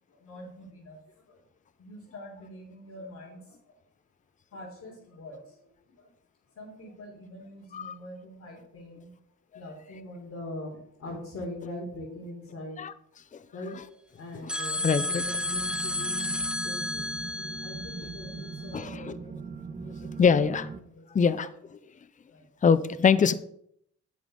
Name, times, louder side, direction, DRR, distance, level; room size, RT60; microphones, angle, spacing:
voice 1, 0.1-1.0 1.3-1.4 1.8-3.5 4.5-5.5 5.9-6.1 6.6-9.1 9.5-12.8 13.5-13.7 14.2-16.3 16.6-17.1 17.6-19.3 19.8-20.5 20.8-21.0 22.3-22.5 22.9-23.0, left 1 dB, 60° left, -5 dB, 3.5 m, -43 dB
sound 1, 14.5-18.8, left 2 dB, 5° right, 0.9 m, -32 dB
sound 2, 14.7-20.8, right 5 dB, 25° right, 1.2 m, -40 dB
voice 2, 14.8-15.2 18.7-19.2 20.2-20.7 21.1-21.5 22.6-23.3, left 6 dB, 25° left, 15 dB, 0.6 m, -23 dB
10.0 x 7.6 x 3.8 m, 0.69 s
cardioid pair, 90°, 30 cm